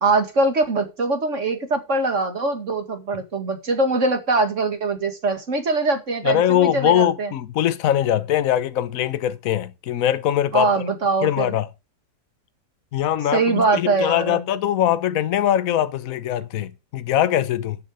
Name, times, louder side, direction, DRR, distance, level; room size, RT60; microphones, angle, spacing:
voice 1, 0.0-7.3 10.5-11.5 13.3-14.5, right 3 dB, 45° right, 2.3 m, -22 dB
voice 2, 6.2-10.8 11.2-11.7 12.9-17.8, left 11 dB, 55° left, 1.2 m, -22 dB
12.5 x 7.2 x 4.9 m
omnidirectional pair, 1.9 m